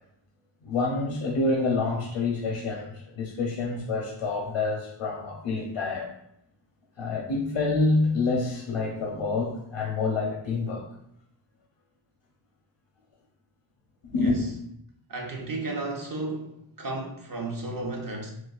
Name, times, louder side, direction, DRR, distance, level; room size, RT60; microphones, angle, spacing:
voice 1, 0.6-6.1 7.0-10.9 14.1-14.4, left 3 dB, 85° left, -1 dB, 0.7 m, -27 dB
voice 2, 14.1-14.5 15.1-18.3, right 2 dB, 45° right, 0 dB, 0.7 m, -33 dB
4.0 x 2.3 x 2.4 m, 0.75 s
wide cardioid pair, 75°, 50 cm